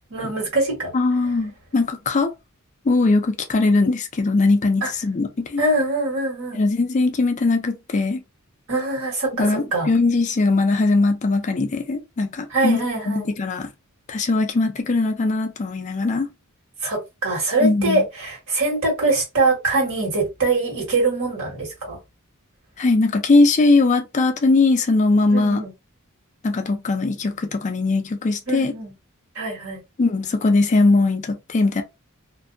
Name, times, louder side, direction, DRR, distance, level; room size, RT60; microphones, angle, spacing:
voice 1, 0.1-0.9 4.8-4.9 5.6-6.6 8.7-9.9 12.5-13.3 16.8-22.0 25.3-25.7 28.5-28.9 29.3-29.8, right 2 dB, 70° right, 1.5 m, -23 dB
voice 2, 0.9-2.3 2.9-5.6 6.5-8.2 9.4-13.7 14.1-16.3 17.6-18.0 22.8-25.6 26.4-28.7 30.0-31.8, left 3 dB, 35° left, 0.4 m, -20 dB
2.5 x 2.2 x 2.5 m
head